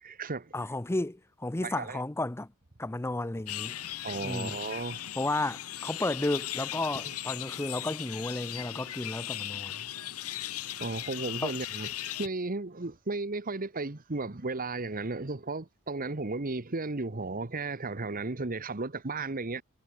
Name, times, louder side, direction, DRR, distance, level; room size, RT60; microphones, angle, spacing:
voice 1, 0.0-0.5 1.6-2.0 4.0-5.0 7.0-7.1 10.8-19.6, right 3 dB, 40° right, 1.2 m, -34 dB
voice 2, 0.5-2.5 2.8-3.7 4.2-4.5 5.2-9.8 11.4-11.5, left 2 dB, 10° left, 0.5 m, -33 dB
sound 1, 3.5-12.3, left 13 dB, 80° left, 1.6 m, -38 dB
head